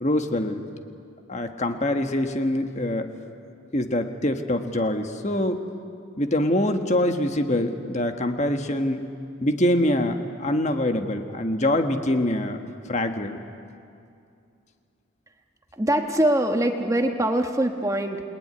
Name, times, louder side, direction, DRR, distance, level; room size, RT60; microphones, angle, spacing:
voice 1, 0.0-0.6 1.3-3.1 3.7-5.6 6.2-9.0 9.4-12.6 12.9-13.4, left 1 dB, 35° left, 6 dB, 1.4 m, -24 dB
voice 2, 15.7-18.2, right 1 dB, 15° right, 5 dB, 1.2 m, -23 dB
29.0 x 20.5 x 9.7 m, 2.5 s
head